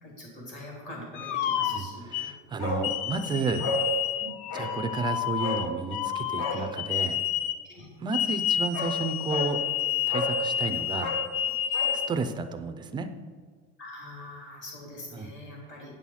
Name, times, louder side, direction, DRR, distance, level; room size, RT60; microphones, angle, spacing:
voice 1, 0.0-2.5 3.3-3.5 4.2-4.3 6.5-6.6 7.6-7.9 11.7-11.8 13.8-15.9, left 1 dB, 35° left, -3 dB, 3.1 m, -44 dB
sound 1, 1.1-2.3 2.8-7.6 8.1-12.1, left 9 dB, 75° left, 0.6 m, -29 dB
voice 2, 1.7-3.7 4.5-7.2 8.0-9.6 10.1-11.2 11.9-13.1 15.1-15.3, right 4 dB, 15° right, 8 dB, 0.4 m, -32 dB
Bark, 2.6-2.9 3.2-3.3 3.6-3.9 4.5-4.8 5.4-5.7 6.3-6.6 8.2-8.3 8.7-9.0 9.3-9.5 10.1-10.4 10.9-12.0 12.3-12.4, left 2 dB, 60° left, 1.7 m, -32 dB
9.0 x 6.2 x 5.6 m, 1.5 s
cardioid pair, 175°, 31 cm